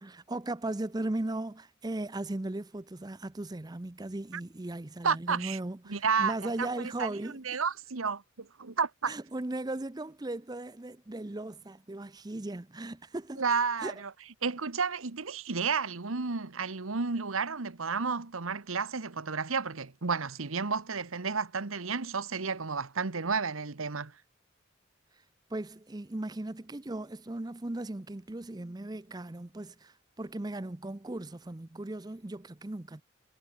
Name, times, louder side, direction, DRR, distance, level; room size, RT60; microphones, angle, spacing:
voice 1, 0.0-7.6 9.1-13.4 13.8-13.9 25.1-25.2 25.5-33.0, right 2 dB, 20° right, 0.6 m, -37 dB
voice 2, 5.0-5.6 5.9-9.1 13.4-14.1 14.4-24.1, right 5 dB, 90° right, 1.3 m, -32 dB
head